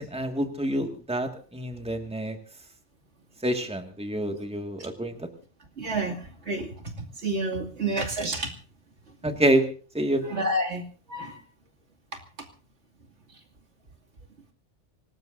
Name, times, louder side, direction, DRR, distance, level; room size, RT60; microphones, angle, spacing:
voice 1, 0.0-2.4 3.4-5.3 9.2-9.7 9.9-10.3, right 1 dB, 5° right, 5 dB, 1.9 m, -27 dB
voice 2, 5.8-8.5 9.2-9.4 10.2-11.4 13.3-13.4, right 2 dB, 70° right, 2 dB, 2.8 m, -30 dB
25.0 x 19.5 x 2.7 m, 0.40 s
omnidirectional pair, 1.2 m